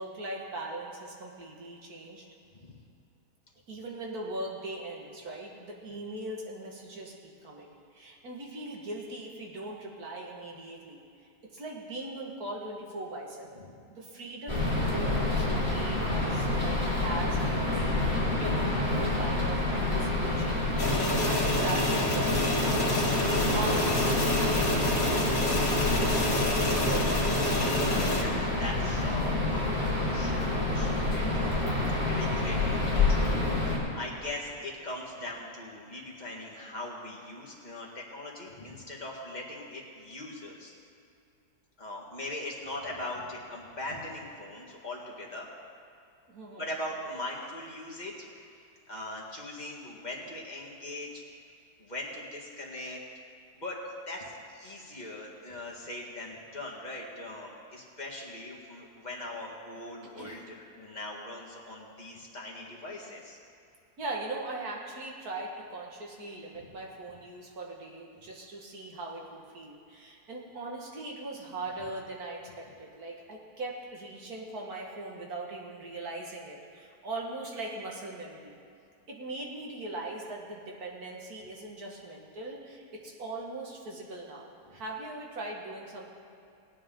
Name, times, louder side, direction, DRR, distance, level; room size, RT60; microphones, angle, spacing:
voice 1, 0.0-2.2 3.7-11.0 11.5-13.6 13.9-20.7 21.2-27.4 46.3-46.7 60.2-60.4 64.0-78.6 79.1-86.1, right 2 dB, 65° right, -2 dB, 2.3 m, -40 dB
sound 1, 14.5-33.8, left 2 dB, 5° right, 3.6 m, -28 dB
sound 2, 20.8-28.2, left 1 dB, 55° left, 2.2 m, -28 dB
voice 2, 28.1-33.3 33.6-40.7 41.8-45.5 46.5-48.4 48.9-51.2 51.8-53.0 53.5-63.4 66.5-66.7, left 1 dB, 25° left, -3 dB, 1.9 m, -41 dB
19.5 x 9.4 x 3.8 m, 2.6 s
omnidirectional pair, 1.7 m